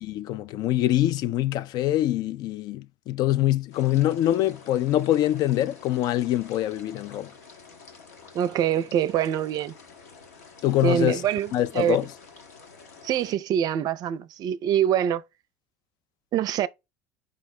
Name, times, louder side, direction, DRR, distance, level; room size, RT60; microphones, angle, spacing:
voice 1, 0.0-7.3 10.6-11.2 11.5-12.1, left 13 dB, 50° left, 0.3 m, -24 dB
sound 1, 3.7-13.3, left 4 dB, 75° left, 1.1 m, -49 dB
voice 2, 8.3-9.7 10.8-11.5 11.7-12.0 13.0-15.2 16.3-16.7, right 10 dB, 50° right, 0.5 m, -24 dB
5.0 x 2.1 x 4.1 m
hypercardioid pair, 70°, 9 cm